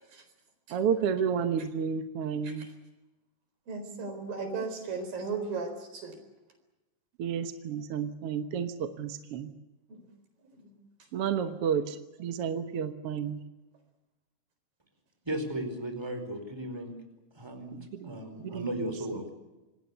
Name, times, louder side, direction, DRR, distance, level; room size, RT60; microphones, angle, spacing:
voice 1, 0.7-2.7 7.2-9.5 11.1-13.4 17.7-18.9, right 7 dB, 60° right, 8 dB, 1.6 m, -31 dB
voice 2, 3.7-6.2 9.9-10.1 10.4-10.8, right 4 dB, 80° right, 7 dB, 5.9 m, -36 dB
voice 3, 15.2-17.0 17.3-17.8 18.0-19.3, right 1 dB, 5° right, 5 dB, 4.4 m, -35 dB
26.5 x 20.0 x 8.2 m, 1.1 s
omnidirectional pair, 4.0 m